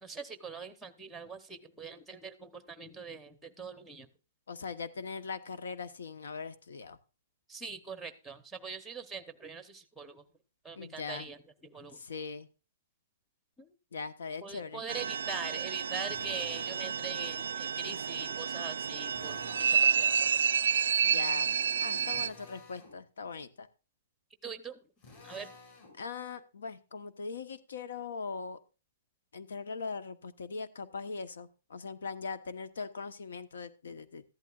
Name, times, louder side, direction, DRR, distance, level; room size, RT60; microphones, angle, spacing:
voice 1, 0.0-4.1 7.5-10.2 10.6-12.0 13.6-13.7 14.4-19.7 19.9-20.3 24.4-24.8 25.2-25.5, right 5 dB, 5° right, 10 dB, 0.8 m, -43 dB
voice 2, 4.5-7.0 10.8-11.3 11.9-12.5 13.9-14.8 21.0-23.7 26.0-28.6 29.3-34.2, left 4 dB, 90° left, 11 dB, 1.1 m, -40 dB
sound 1, 14.9-22.3, right 7 dB, 80° right, 0.4 m, -30 dB
Drill, 16.1-16.9 19.1-20.0 22.1-23.0 25.0-26.0, left 3 dB, 35° left, 7.7 m, -53 dB
14.5 x 11.5 x 2.4 m, 0.32 s
hypercardioid pair, 175°, 0 cm